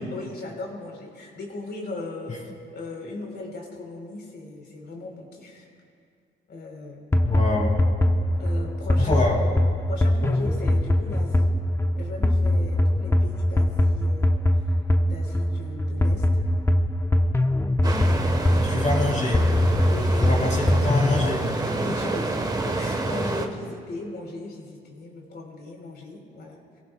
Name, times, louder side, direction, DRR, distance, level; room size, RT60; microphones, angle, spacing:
voice 1, 0.1-2.4 2.7-5.7 6.5-7.1 8.4-9.2 9.9-11.5 12.0-14.5 15.0-16.5 19.8-20.6 20.8-20.9 21.6-22.3 22.7-26.8, left 2 dB, 60° left, 0 dB, 4.0 m, -37 dB
sound 1, 7.1-21.3, left 1 dB, 15° left, 0.9 m, -22 dB
voice 2, 7.2-7.7 9.0-9.4 18.6-19.5 20.2-21.4, left 3 dB, 40° left, -2 dB, 4.8 m, -25 dB
sound 2, 17.8-23.5, right 2 dB, 20° right, 1.3 m, -28 dB
27.0 x 16.5 x 2.3 m, 2.3 s
cardioid pair, 90°, 20 cm